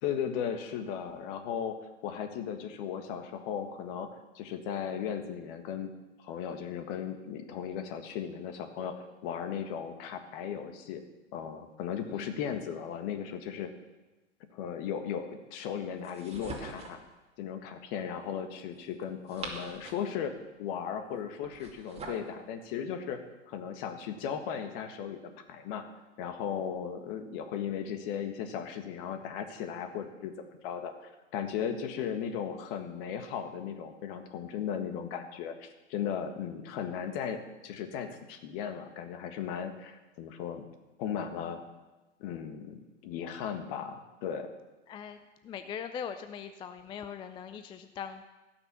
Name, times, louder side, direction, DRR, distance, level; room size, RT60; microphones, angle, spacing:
voice 1, 0.0-1.8 2.0-5.9 6.2-11.0 11.3-13.7 14.5-17.0 17.4-20.3 20.6-23.2 23.5-25.2 25.5-25.8 26.2-30.9 31.3-40.7 41.0-41.6 42.2-44.5, left 8 dB, 50° left, 7 dB, 1.7 m, -36 dB
voice 2, 12.0-12.3 44.9-45.2 45.4-48.2, left 7 dB, 15° left, 9 dB, 0.4 m, -41 dB
sound 1, 16.0-17.1 19.0-20.2 21.4-22.3, right 3 dB, 15° right, 2.2 m, -43 dB
16.0 x 6.1 x 6.9 m, 1.1 s
hypercardioid pair, 105°, 36 cm